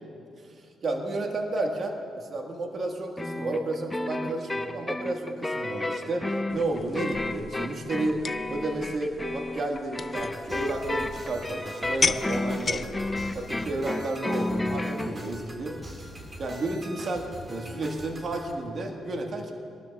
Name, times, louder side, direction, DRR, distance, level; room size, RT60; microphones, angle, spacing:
voice 1, 0.4-8.2 8.5-12.9 13.3-16.1 16.4-19.5, right 2 dB, 50° right, 2 dB, 1.6 m, -32 dB
sound 1, 3.2-15.1, left 2 dB, 15° left, 0.9 m, -32 dB
sound 2, 6.5-13.5, left 4 dB, 40° left, 0.4 m, -35 dB
sound 3, 10.2-18.5, right 1 dB, 30° right, 2.0 m, -43 dB
21.5 x 12.0 x 2.4 m, 2.4 s
supercardioid pair, 65°, 0 cm